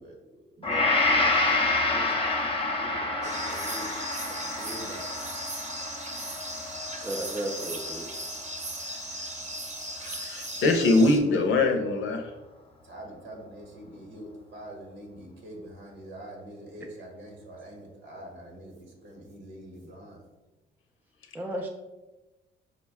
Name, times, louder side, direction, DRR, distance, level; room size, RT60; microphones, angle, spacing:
voice 1, 0.0-3.9 4.2-5.1 12.8-20.2, right 1 dB, 75° right, 1 dB, 1.1 m, -44 dB
Gong, 0.6-8.9 9.4-9.6, left 2 dB, 30° left, 0.7 m, -28 dB
sound 1, 3.2-11.2, right 1 dB, 35° right, 0.8 m, -37 dB
voice 2, 3.5-4.1 10.0-12.3, left 2 dB, 80° left, 5 dB, 0.6 m, -24 dB
voice 3, 7.0-8.1 21.3-21.7, right 1 dB, 10° right, 2 dB, 0.4 m, -33 dB
5.0 x 2.2 x 3.4 m, 1.1 s
cardioid pair, 90°, 20 cm